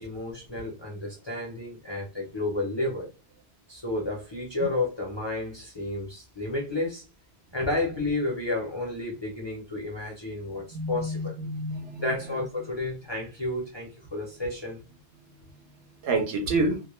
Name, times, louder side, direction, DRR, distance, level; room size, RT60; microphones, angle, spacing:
voice 1, 0.0-3.1 3.7-7.0 7.5-11.3 12.0-14.8, left 2 dB, 30° left, -3 dB, 0.5 m, -31 dB
voice 2, 10.7-12.0 16.0-16.8, right 2 dB, 70° right, 5 dB, 0.8 m, -28 dB
2.2 x 2.1 x 2.9 m, 0.29 s
omnidirectional pair, 1.2 m